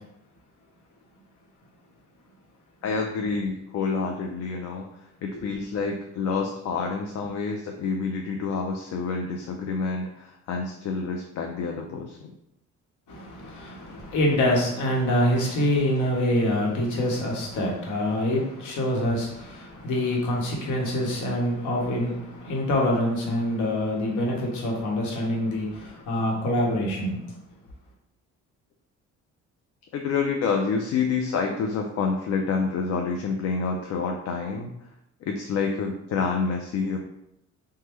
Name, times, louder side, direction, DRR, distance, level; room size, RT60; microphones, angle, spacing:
voice 1, 2.8-12.3 29.9-34.7 35.2-37.0, left 5 dB, 60° left, 3 dB, 0.4 m, -28 dB
voice 2, 13.1-27.2, left 1 dB, 80° left, -2 dB, 1.0 m, -25 dB
3.3 x 2.2 x 3.0 m, 0.80 s
cardioid pair, 90°, 30 cm